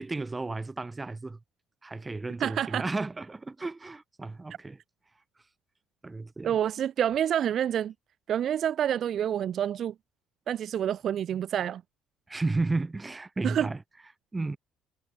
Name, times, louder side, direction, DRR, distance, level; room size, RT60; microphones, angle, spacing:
voice 1, 0.0-1.4 1.8-4.8 6.0-6.6 12.3-13.8 14.3-14.6, right 3 dB, 20° right, 4.7 m, -33 dB
voice 2, 2.4-2.8 6.4-7.9 8.3-9.9 10.5-11.8 13.4-13.7, right 10 dB, 55° right, 1.4 m, -28 dB
hypercardioid pair, 55°, 0 cm